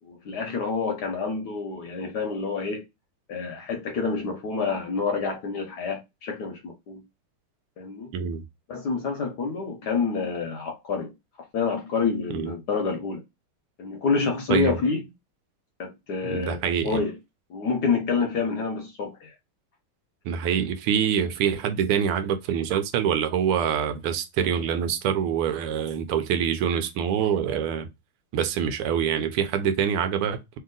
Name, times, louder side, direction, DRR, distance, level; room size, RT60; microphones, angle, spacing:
voice 1, 0.0-2.8 3.3-7.0 7.8-8.1 8.7-13.2 13.8-15.0 15.8-17.2 17.5-19.3, left 5 dB, 65° left, 1.1 m, -28 dB
voice 2, 8.1-8.4 12.3-12.5 14.5-14.8 16.2-17.0 20.2-27.9 28.3-30.6, right 8 dB, 80° right, 1.6 m, -25 dB
3.5 x 2.8 x 3.7 m
omnidirectional pair, 2.4 m